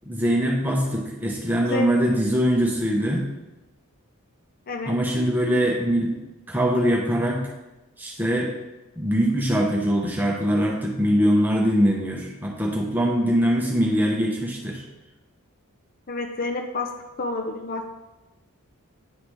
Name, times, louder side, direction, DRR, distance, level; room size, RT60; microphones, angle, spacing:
voice 1, 0.0-3.3 4.8-6.1 6.5-7.4 8.0-8.5 9.0-14.8, equal, 10° right, -2 dB, 1.0 m, -22 dB
voice 2, 16.1-16.9 17.2-17.9, left 2 dB, 40° left, 3 dB, 0.6 m, -29 dB
10.0 x 3.9 x 3.3 m, 1.0 s
head